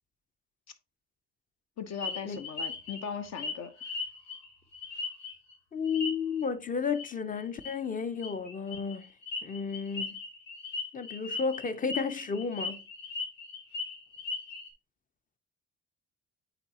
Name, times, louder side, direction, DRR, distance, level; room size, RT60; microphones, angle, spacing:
voice 1, 1.8-3.7, left 6 dB, 60° left, 0.9 m, -38 dB
sound 1, 2.0-5.5 5.8-6.4 6.9-7.1 7.4-7.7 8.2-14.7, left 4 dB, 90° left, 1.4 m, -38 dB
voice 2, 5.7-9.1 9.4-10.2 10.9-12.8, left 5 dB, 25° left, 0.6 m, -32 dB
8.6 x 4.0 x 2.9 m
cardioid pair, 90°, 30 cm